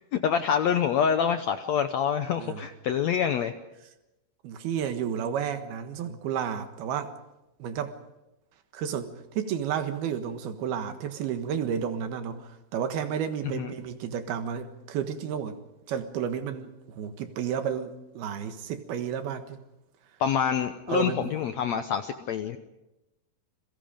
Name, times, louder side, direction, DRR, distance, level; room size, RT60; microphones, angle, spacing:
voice 1, 0.1-3.5 13.5-13.7 20.2-22.6, left 8 dB, 85° left, 1.5 m, -26 dB
voice 2, 4.4-7.2 7.6-8.0 8.7-15.6 15.9-19.6 20.9-21.4, right 8 dB, 85° right, 3.4 m, -32 dB
29.5 x 22.0 x 5.2 m
omnidirectional pair, 4.4 m